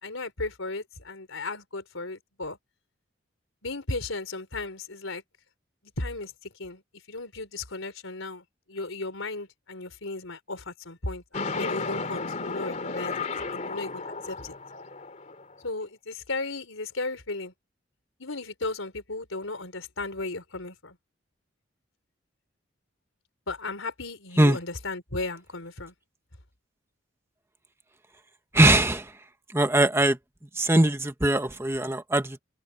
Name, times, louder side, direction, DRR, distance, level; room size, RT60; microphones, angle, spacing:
voice 1, 0.0-2.6 3.6-5.2 6.0-6.8 7.1-14.5 15.6-17.5 18.2-21.0 23.5-25.9, left 3 dB, 90° left, 4.2 m, -35 dB
sound 1, 11.3-15.6, left 4 dB, 35° left, 3.0 m, -33 dB
voice 2, 28.5-29.1 29.5-30.2 30.5-32.4, right 1 dB, 15° right, 1.3 m, -21 dB
open air
head